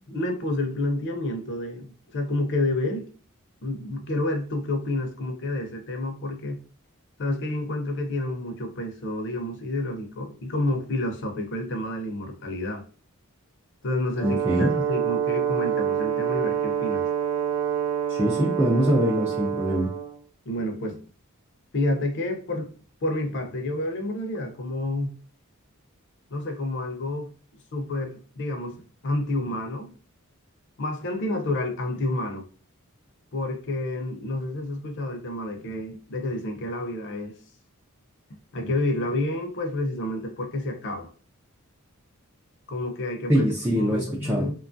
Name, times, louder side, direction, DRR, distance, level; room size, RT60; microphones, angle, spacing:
voice 1, 0.1-3.1 3.6-6.6 7.2-12.8 13.8-17.0 20.5-21.0 21.7-22.7 23.0-25.2 26.3-27.3 27.7-29.9 30.8-32.5 33.3-37.4 38.5-41.1 42.7-44.5, left 1 dB, 55° left, 0.6 m, -29 dB
Brass instrument, 14.1-20.1, right 9 dB, 85° right, 0.5 m, -27 dB
voice 2, 14.2-14.7 18.1-19.9 43.3-44.5, equal, 10° right, 0.4 m, -23 dB
2.9 x 2.3 x 2.5 m
head